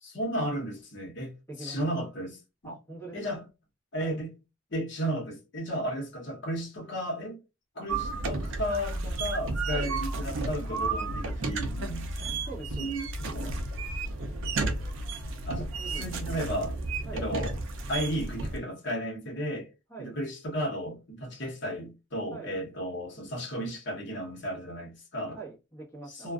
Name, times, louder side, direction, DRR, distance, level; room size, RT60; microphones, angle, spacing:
voice 1, 0.0-2.7 3.1-3.4 3.9-4.3 4.7-7.4 7.7-12.4 12.8-13.6 15.5-15.7 16.0-16.8 17.1-17.6 17.9-19.7 20.0-25.4 26.1-26.3, equal, 55° left, 0.9 m, -34 dB
voice 2, 1.5-2.1 2.6-3.4 4.0-4.2 9.7-10.0 12.4-12.9 15.6-16.2 17.0-17.3 19.9-20.2 22.3-22.6 25.3-26.3, right 3 dB, 10° left, 1.0 m, -43 dB
sound 1, 7.9-18.6, right 3 dB, 60° right, 0.4 m, -32 dB
2.4 x 2.3 x 2.3 m
head